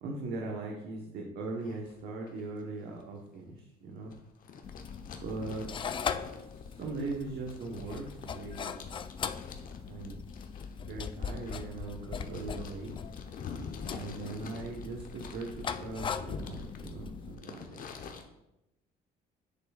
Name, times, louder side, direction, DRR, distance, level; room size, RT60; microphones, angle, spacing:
voice 1, 0.0-4.1 5.2-5.7 6.7-8.9 9.9-10.2 10.8-12.9 13.9-17.8, right 3 dB, 75° right, 0 dB, 1.1 m, -40 dB
sound 1, 1.6-1.9 2.3-2.6 3.0-3.1 4.1-18.2, left 5 dB, 55° left, 0.9 m, -47 dB
sound 2, 4.6-17.3, left 6 dB, 30° left, 0.3 m, -40 dB
7.7 x 6.7 x 2.4 m, 0.85 s
cardioid pair, 110°, 17 cm